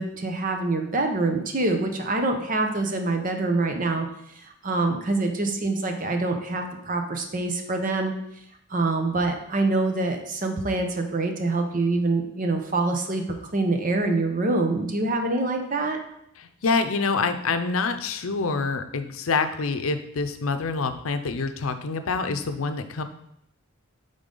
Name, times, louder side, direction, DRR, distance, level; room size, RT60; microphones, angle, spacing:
voice 1, 0.0-4.1 4.4-8.1 8.7-13.2 13.5-16.0, right 2 dB, 40° right, 5 dB, 0.8 m, -25 dB
voice 2, 16.4-23.0, left 4 dB, 85° left, 9 dB, 0.6 m, -26 dB
8.9 x 3.8 x 3.8 m, 0.77 s
head